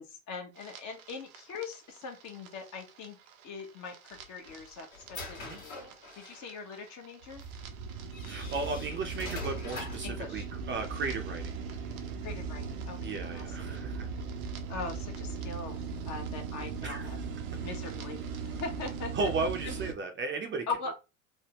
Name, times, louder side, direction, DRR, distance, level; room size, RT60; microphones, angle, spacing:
voice 1, 0.0-3.2 3.4-7.4 10.0-10.4 12.2-14.0 14.7-19.3 19.6-19.7 20.7-20.9, left 4 dB, 45° left, 4 dB, 1.0 m, -41 dB
sound 1, 0.6-19.9, right 5 dB, 80° right, 0.8 m, -39 dB
sound 2, 4.1-6.5 7.4-7.5 8.1-10.2, left 3 dB, 85° left, 1.3 m, -43 dB
voice 2, 8.3-11.6 13.0-14.1 16.8-17.1 19.1-20.6, right 3 dB, 30° right, 4 dB, 0.6 m, -35 dB
3.4 x 2.1 x 2.9 m, 0.27 s
hypercardioid pair, 90°, 41 cm